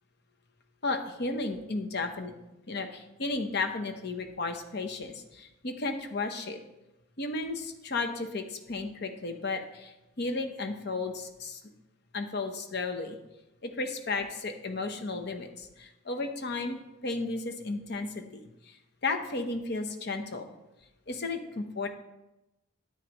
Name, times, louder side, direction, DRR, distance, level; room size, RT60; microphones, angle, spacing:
voice 1, 0.8-2.3 2.7-6.6 7.2-11.6 12.1-13.2 13.6-18.2 18.7-18.8 19.0-20.5 21.1-21.9, left 3 dB, 55° left, 5 dB, 0.9 m, -34 dB
9.6 x 8.7 x 3.0 m, 0.96 s
head